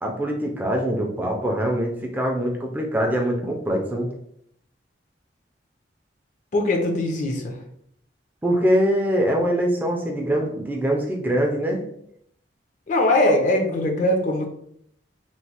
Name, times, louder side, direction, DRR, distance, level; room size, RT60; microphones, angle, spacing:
voice 1, 0.0-4.1 8.4-11.8, equal, 10° right, 0 dB, 0.3 m, -23 dB
voice 2, 6.5-7.6 12.9-14.5, left 1 dB, 45° left, 3 dB, 0.5 m, -21 dB
3.0 x 2.0 x 2.8 m, 0.70 s
head